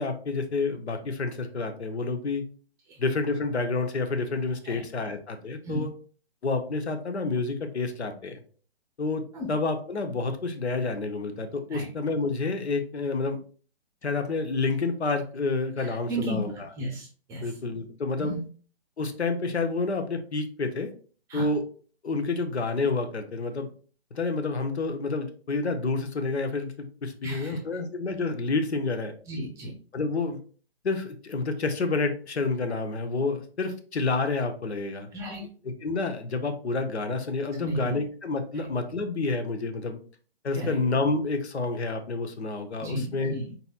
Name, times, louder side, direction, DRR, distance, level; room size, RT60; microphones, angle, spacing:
voice 1, 0.0-2.4 3.0-5.9 6.4-8.4 9.0-13.4 14.0-16.5 17.4-18.3 19.0-20.9 21.3-21.6 22.0-23.7 24.1-29.1 29.9-30.4 30.8-35.1 35.6-40.0 40.4-43.4, left 3 dB, 85° left, 6 dB, 0.9 m, -29 dB
voice 2, 4.6-5.1 5.6-5.8 9.3-9.5 11.7-11.9 15.8-17.6 18.2-18.4 21.3-21.5 27.2-27.6 29.3-29.7 35.1-35.5 37.6-37.9 38.5-38.7 40.5-40.8 42.8-43.5, right 1 dB, 10° right, 0 dB, 0.6 m, -34 dB
4.2 x 4.0 x 2.3 m, 0.41 s
hypercardioid pair, 145°, 32 cm